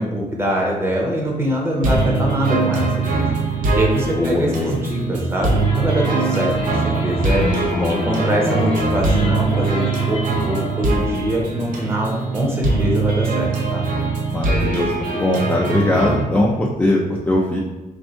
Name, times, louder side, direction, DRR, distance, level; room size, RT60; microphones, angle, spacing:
voice 1, 0.0-3.3 3.7-7.4 7.9-13.8, right 1 dB, 15° right, -2 dB, 0.7 m, -23 dB
sound 1, 1.8-16.2, right 3 dB, 75° right, 0.7 m, -22 dB
voice 2, 4.2-4.7 7.4-8.0 8.4-8.5 14.3-17.6, left 1 dB, 10° left, -3 dB, 0.3 m, -21 dB
sound 2, 5.5-10.9, left 2 dB, 45° left, 0.7 m, -30 dB
3.4 x 2.6 x 4.4 m, 1.1 s
cardioid pair, 165°, 14 cm